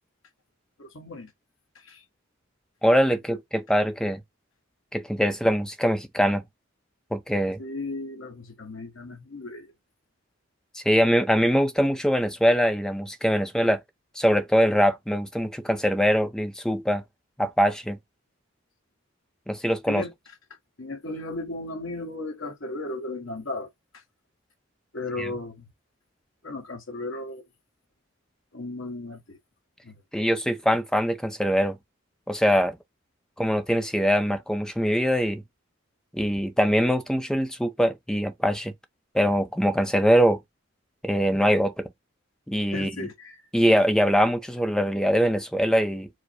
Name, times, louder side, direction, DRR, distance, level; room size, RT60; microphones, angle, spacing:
voice 1, 0.8-1.3 1.7-2.0 3.3-3.4 7.6-9.7 19.9-20.1 20.8-23.7 23.9-24.0 24.9-25.7 26.4-27.4 28.5-29.4 29.8-29.9 42.7-43.4, left 2 dB, 80° left, 1.3 m, -35 dB
voice 2, 2.8-4.2 4.9-6.4 7.1-7.6 10.7-13.8 14.2-17.0 17.4-18.0 19.5-20.0 25.2-25.3 30.1-31.8 32.3-32.8 33.4-35.4 36.1-38.7 39.1-40.4 41.0-41.9 42.5-43.1 43.5-46.1, equal, 5° left, 0.6 m, -23 dB
4.8 x 2.1 x 4.5 m
head